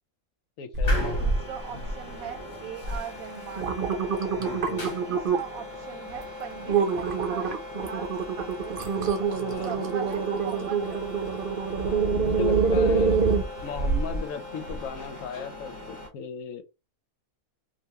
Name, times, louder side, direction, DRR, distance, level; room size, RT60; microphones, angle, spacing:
voice 1, 0.6-1.0 4.4-5.0 9.3-9.9 11.8-13.2 13.6-16.6, left 7 dB, 70° left, 1.0 m, -36 dB
sound 1, 0.7-1.4 1.8-2.3 2.8-3.0 3.4-5.6 6.1-6.3 6.7-14.2 14.7-14.8, right 5 dB, 50° right, 0.7 m, -26 dB
sound 2, 0.8-16.1, left 2 dB, 35° left, 1.2 m, -39 dB
voice 2, 1.1-3.8 5.0-8.1 8.4-8.8 9.6-11.2, right 8 dB, 75° right, 1.1 m, -40 dB
3.3 x 2.6 x 2.9 m
omnidirectional pair, 1.5 m